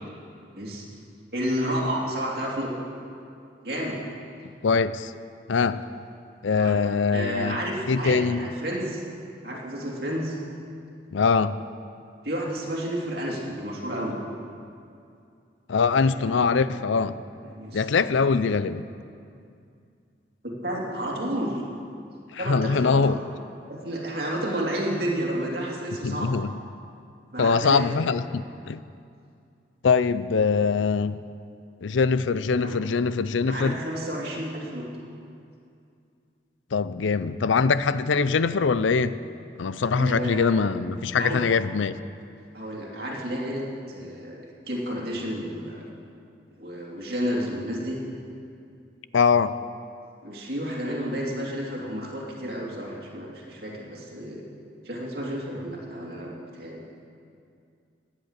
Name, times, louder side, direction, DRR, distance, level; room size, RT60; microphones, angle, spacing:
voice 1, 1.3-2.7 3.6-4.0 6.5-6.8 7.1-9.0 9.4-10.4 12.2-14.2 16.1-16.5 17.5-17.9 20.4-21.6 22.4-23.2 23.7-26.3 27.3-27.8 32.5-32.8 33.4-34.9 39.9-40.5 41.2-41.4 42.5-43.6 43.9-45.8 46.6-48.0 50.2-54.4 54.8-56.8, equal, 55° right, -3 dB, 2.8 m, -31 dB
voice 2, 4.6-5.1 5.5-5.8 6.4-7.6 7.9-8.5 11.1-11.6 15.7-17.2 17.7-18.9 22.3-23.2 26.0-26.5 27.4-28.8 29.8-31.2 31.8-33.8 36.7-39.2 39.6-42.0 49.1-49.5, left 5 dB, 85° left, 15 dB, 0.5 m, -23 dB
16.5 x 10.5 x 6.6 m, 2.4 s
head